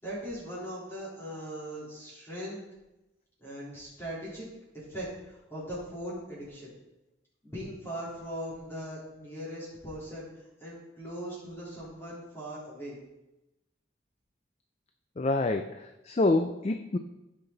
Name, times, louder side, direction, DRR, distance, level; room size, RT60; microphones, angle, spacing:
voice 1, 0.0-2.6 3.4-4.5 4.7-6.7 7.4-13.0, equal, 15° left, -8 dB, 3.6 m, -40 dB
voice 2, 15.2-17.0, left 2 dB, 35° left, 7 dB, 0.4 m, -27 dB
15.0 x 5.8 x 4.0 m, 0.97 s
head